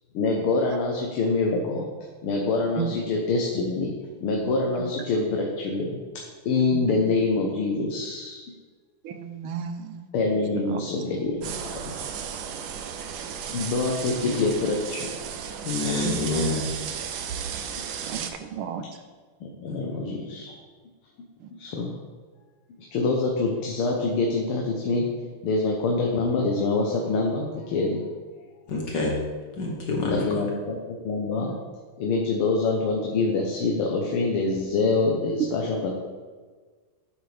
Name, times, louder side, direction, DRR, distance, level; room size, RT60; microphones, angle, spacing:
voice 1, 0.1-1.9 2.2-3.9 4.2-6.0 6.5-8.4 10.1-11.7 13.5-15.1 19.4-20.5 21.6-21.9 22.8-28.0 30.0-31.6 32.0-35.9, left 3 dB, 90° left, 0 dB, 1.9 m, -25 dB
voice 2, 6.7-7.1 9.0-10.1 10.7-10.8 16.0-16.1 18.1-18.9, right 8 dB, 85° right, 8 dB, 1.6 m, -33 dB
sound 1, 11.4-18.3, right 7 dB, 65° right, 1.0 m, -34 dB
voice 3, 14.0-14.5 15.6-16.6 19.7-20.0 28.7-29.2 29.6-30.4, left 3 dB, 60° left, -1 dB, 1.8 m, -28 dB
10.0 x 7.9 x 3.4 m, 1.5 s
omnidirectional pair, 2.3 m